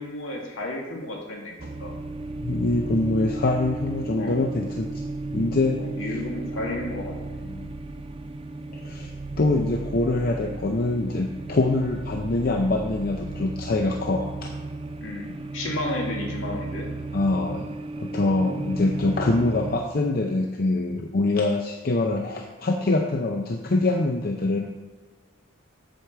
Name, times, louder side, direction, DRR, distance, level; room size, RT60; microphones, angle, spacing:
voice 1, 0.0-1.5 1.8-1.9 4.2-4.4 5.8-7.5 15.0-16.9, left 2 dB, 70° left, 0 dB, 1.9 m, -32 dB
sound 1, 1.6-19.8, right 2 dB, 25° right, 0.4 m, -34 dB
voice 2, 2.4-4.9 5.3-5.8 7.5-7.7 8.7-9.1 9.4-14.5 17.1-17.7 18.0-24.6, left 2 dB, 45° left, 2 dB, 0.5 m, -24 dB
8.0 x 4.7 x 6.7 m, 1.3 s
head